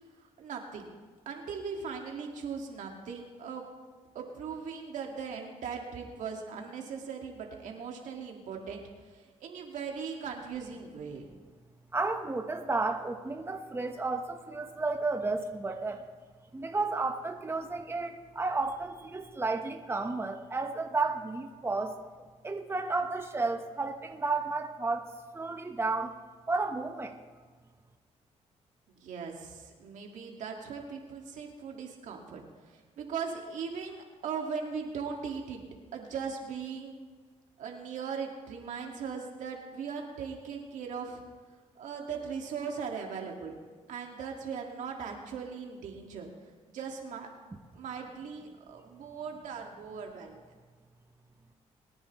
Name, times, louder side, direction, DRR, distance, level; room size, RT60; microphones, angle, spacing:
voice 1, 0.4-0.9 1.3-3.6 4.1-8.8 9.1-11.3 28.9-35.6 35.9-36.9 37.6-41.2 41.8-43.5 43.9-46.3 46.7-47.3 47.7-50.4, right 6 dB, 80° right, 1 dB, 2.0 m, -39 dB
voice 2, 11.9-16.1 16.5-21.9 22.4-26.2 26.5-27.2, right 3 dB, 20° right, 4 dB, 1.1 m, -32 dB
22.0 x 10.0 x 3.1 m, 1.5 s
cardioid pair, 85°, 13 cm